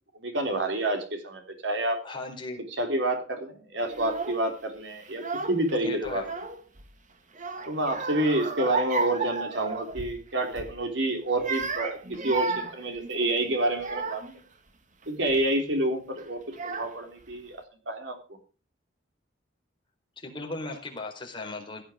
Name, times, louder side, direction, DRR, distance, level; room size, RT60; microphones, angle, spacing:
voice 1, 0.2-2.0 2.8-5.2 5.5-6.2 7.7-12.0 12.2-14.2 15.1-17.6 17.9-18.2, right 1 dB, 70° right, 5 dB, 3.5 m, -28 dB
voice 2, 2.0-2.6 5.8-6.3 20.2-21.8, left 2 dB, 25° left, 1 dB, 4.4 m, -37 dB
Child speech kid speaking / Crying sobbing, 3.9-4.4 5.1-5.7 6.0-6.9 7.3-10.2 10.5-10.8 11.3-14.4 15.0-15.4 16.2-16.3 16.5-17.2, right 3 dB, 45° right, 1.7 m, -33 dB
16.5 x 9.4 x 5.1 m, 0.35 s
head